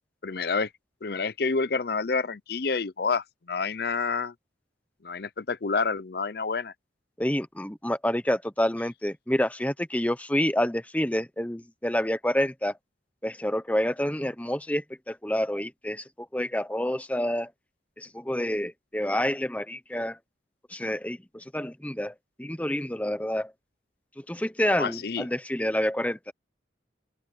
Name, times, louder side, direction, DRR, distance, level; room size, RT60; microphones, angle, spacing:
voice 1, 0.2-0.7 1.0-4.3 5.0-6.7 24.7-25.3, left 4 dB, 55° left, 0.6 m, -28 dB
voice 2, 7.2-12.7 13.2-16.0 16.3-17.5 18.0-20.2 20.7-23.5 24.2-26.3, left 1 dB, 10° left, 1.0 m, -28 dB
open air
head